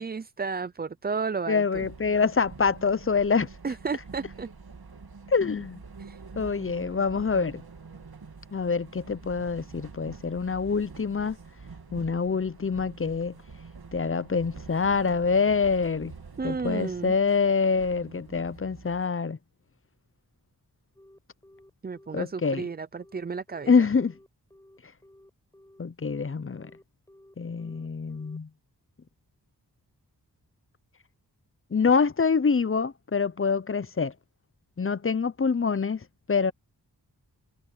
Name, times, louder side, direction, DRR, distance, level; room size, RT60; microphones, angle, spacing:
voice 1, 0.0-1.8 3.6-4.5 6.0-6.2 16.4-17.1 21.8-23.7, right 5 dB, 25° right, 0.4 m, -32 dB
voice 2, 1.5-3.5 5.3-5.8 6.4-7.6 8.5-11.4 11.9-13.3 13.9-16.1 16.4-19.4 22.1-22.6 23.7-24.1 25.8-26.7 27.4-28.5 31.7-34.1 34.8-36.0 36.3-36.5, left 5 dB, 35° left, 0.6 m, -25 dB
sound 1, 1.7-19.1, right 4 dB, 65° right, 2.8 m, -46 dB
Telephone, 21.0-28.4, left 1 dB, 10° left, 4.6 m, -55 dB
wide cardioid pair, 75°, 40 cm